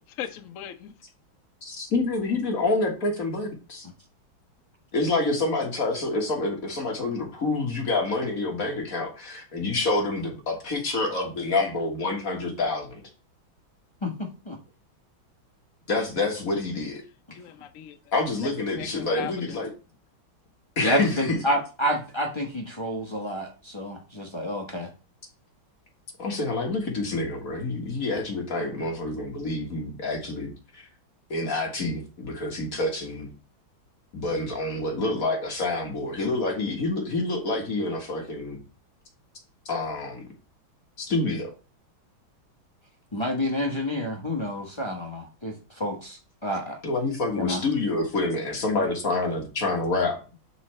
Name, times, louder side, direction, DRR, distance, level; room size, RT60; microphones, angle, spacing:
voice 1, 0.2-0.9 17.3-18.0 18.4-19.6, left 10 dB, 60° left, 7 dB, 0.8 m, -38 dB
voice 2, 1.6-3.9 4.9-13.0 15.9-17.0 18.1-19.7 20.8-21.4 26.2-30.9 31.3-33.3 34.1-38.6 39.7-40.2 41.0-41.5 46.8-50.2, left 2 dB, 45° left, 1 dB, 1.7 m, -27 dB
voice 3, 20.8-24.9 43.1-46.8 47.4-47.6, equal, 30° left, 0 dB, 0.5 m, -29 dB
10.5 x 4.1 x 3.2 m, 0.34 s
omnidirectional pair, 2.2 m